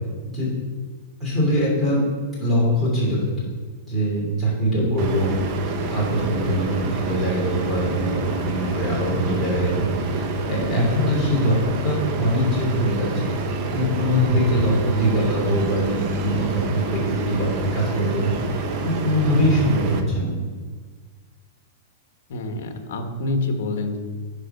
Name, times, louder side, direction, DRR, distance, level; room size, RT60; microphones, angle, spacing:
voice 1, 1.2-2.0 2.4-3.4 3.8-5.3 5.9-13.3 13.7-20.4, equal, 5° right, -7 dB, 3.0 m, -23 dB
sound 1, 5.0-20.0, right 2 dB, 35° right, 0.8 m, -27 dB
voice 2, 22.3-24.0, left 2 dB, 60° left, 5 dB, 1.3 m, -27 dB
10.0 x 4.9 x 5.5 m, 1.5 s
supercardioid pair, 175°, 0 cm